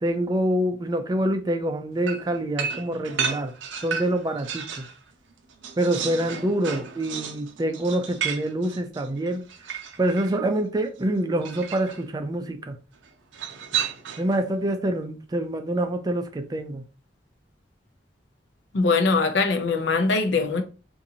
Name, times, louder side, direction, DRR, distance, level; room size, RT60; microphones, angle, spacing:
voice 1, 0.0-3.5 3.8-4.8 5.8-9.4 10.0-12.8 14.2-16.8, right 1 dB, 20° right, 0.4 m, -26 dB
sound 1, 2.1-5.0 5.3-10.4 11.4-12.0 13.3-14.4, right 7 dB, 90° right, 0.6 m, -32 dB
voice 2, 18.7-20.6, left 4 dB, 80° left, 0.6 m, -22 dB
3.9 x 2.6 x 2.7 m
head